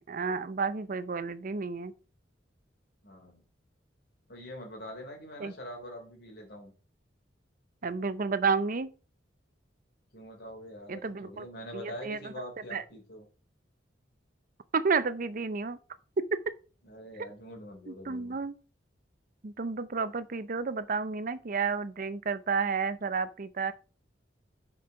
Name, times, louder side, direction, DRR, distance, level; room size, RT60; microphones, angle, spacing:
voice 1, 0.0-1.9 5.4-5.5 7.8-8.9 10.9-11.4 11.7-12.3 12.7-12.8 14.7-15.8 16.3-16.4 17.9-18.5 19.4-23.7, right 5 dB, 50° right, 0.6 m, -31 dB
voice 2, 3.0-3.4 4.3-6.7 10.1-13.2 16.8-18.4, equal, 60° left, 3.3 m, -44 dB
6.7 x 5.3 x 5.7 m
head